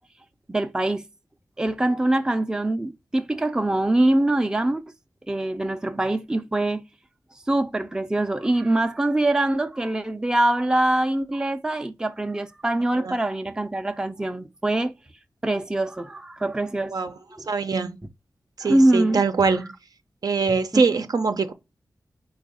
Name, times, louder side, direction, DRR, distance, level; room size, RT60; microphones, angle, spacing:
voice 1, 0.5-1.0 1.6-4.8 5.3-6.8 7.5-14.9 15.4-16.9 17.4-17.5 18.6-19.2 20.7-20.8, right 1 dB, 10° right, 0.4 m, -23 dB
voice 2, 17.5-18.0 18.6-19.7 20.2-21.5, right 4 dB, 65° right, 0.6 m, -23 dB
4.5 x 2.3 x 4.8 m
wide cardioid pair, 105°, 7 cm